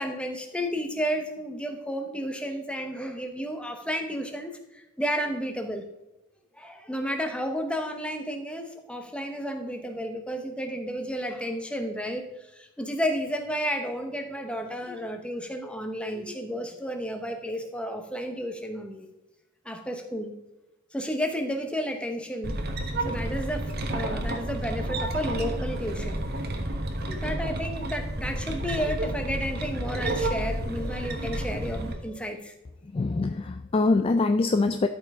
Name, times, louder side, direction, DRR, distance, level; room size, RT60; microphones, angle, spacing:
voice 1, 0.0-5.8 6.6-12.3 12.5-19.1 19.6-20.3 20.9-22.6 23.0-26.2 27.1-32.5, equal, 5° left, 5 dB, 1.0 m, -32 dB
sound 1, 22.4-31.9, right 1 dB, 50° right, 1.2 m, -30 dB
voice 2, 32.9-34.9, left 3 dB, 25° left, 8 dB, 0.3 m, -24 dB
13.0 x 5.6 x 3.6 m, 0.97 s
head